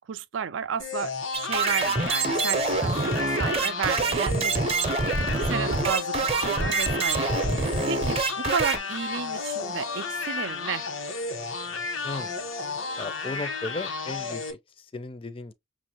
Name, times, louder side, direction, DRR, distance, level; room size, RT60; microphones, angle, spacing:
voice 1, 0.1-5.0 5.3-10.9, right 7 dB, 75° right, 0.4 m, -33 dB
sound 1, 0.8-14.5, left 4 dB, 90° left, 1.2 m, -32 dB
sound 2, 1.3-8.8, right 3 dB, 30° right, 0.7 m, -26 dB
voice 2, 13.0-15.5, left 3 dB, 30° left, 0.5 m, -36 dB
6.0 x 2.5 x 2.9 m
head